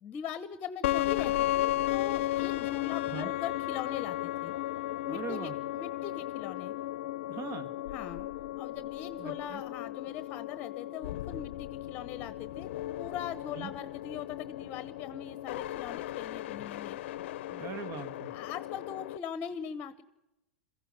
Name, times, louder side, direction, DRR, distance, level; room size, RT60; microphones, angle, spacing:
voice 1, 0.0-4.5 5.0-6.7 7.9-8.3 8.6-12.7 13.0-17.0 18.3-20.0, left 8 dB, 30° left, 13 dB, 1.1 m, -41 dB
sound 1, 0.8-19.2, left 15 dB, 65° left, 0.6 m, -35 dB
voice 2, 5.1-5.6 7.3-7.7 9.2-9.6 13.6-13.7 17.5-18.3, right 5 dB, 40° right, 11 dB, 1.9 m, -40 dB
22.5 x 15.5 x 8.2 m, 0.96 s
hypercardioid pair, 115°, 7 cm